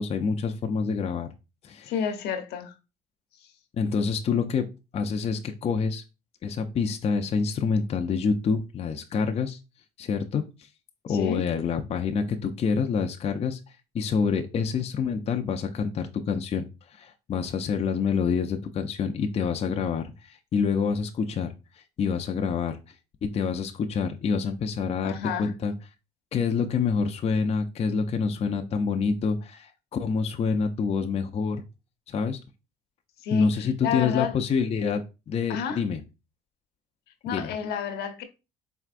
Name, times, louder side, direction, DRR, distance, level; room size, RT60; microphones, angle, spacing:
voice 1, 0.0-1.3 1.6-1.9 3.8-4.7 4.9-6.0 6.4-9.6 10.0-10.7 11.0-13.6 13.9-21.5 22.0-22.8 23.2-25.7 26.3-31.6 32.1-32.4 33.3-36.0 37.3-37.5, left 5 dB, 35° left, 0.5 m, -27 dB
voice 2, 1.9-2.7 3.4-3.5 11.1-11.4 25.0-25.5 33.2-34.3 35.5-35.8 37.2-38.2, left 7 dB, 80° left, 0.8 m, -30 dB
4.6 x 3.4 x 2.4 m
cardioid pair, 110°, 17 cm